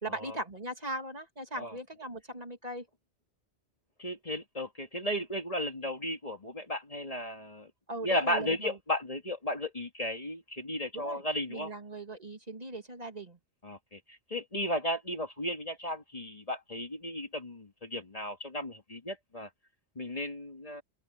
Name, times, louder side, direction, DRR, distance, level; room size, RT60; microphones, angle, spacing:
voice 1, 0.0-2.9 7.9-8.8 10.9-11.2 11.5-13.4, right 1 dB, 35° right, 2.5 m, -39 dB
voice 2, 4.0-7.7 8.0-11.7 13.6-19.5 20.0-20.8, left 1 dB, 30° left, 2.1 m, -35 dB
open air
omnidirectional pair, 1.2 m